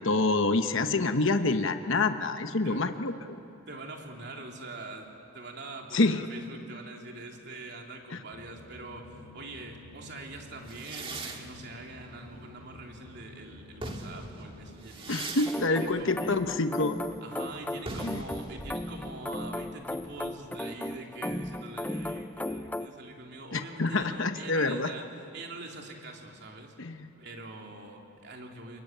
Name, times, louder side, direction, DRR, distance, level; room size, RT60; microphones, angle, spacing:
voice 1, 0.0-3.4 5.9-6.3 8.1-8.2 15.1-17.0 18.0-18.2 23.5-24.9 26.8-27.1, left 3 dB, 65° left, 8 dB, 1.1 m, -27 dB
voice 2, 3.7-15.2 15.7-16.3 17.2-25.1 25.3-26.7 27.2-28.8, right 2 dB, 55° right, 1 dB, 3.3 m, -44 dB
sound 1, 8.3-14.8, left 2 dB, 80° right, 4.9 m, -51 dB
sound 2, 10.7-13.1 13.6-21.1, right 2 dB, 25° right, 1.9 m, -43 dB
sound 3, 15.5-22.9, left 1 dB, 10° left, 0.6 m, -36 dB
29.5 x 21.5 x 9.2 m, 2.8 s
head